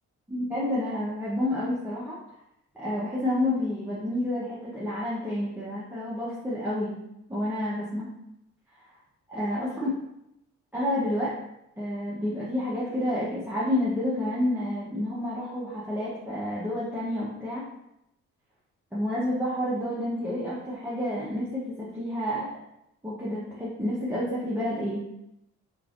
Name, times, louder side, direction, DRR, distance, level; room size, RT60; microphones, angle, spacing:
voice 1, 0.3-2.1 2.7-7.0 7.3-8.1 9.3-9.9 10.7-11.3 11.8-17.6 18.9-22.5 23.0-25.0, left 1 dB, 5° right, -9 dB, 0.8 m, -29 dB
3.3 x 3.0 x 2.5 m, 0.84 s
cardioid pair, 90°, 30 cm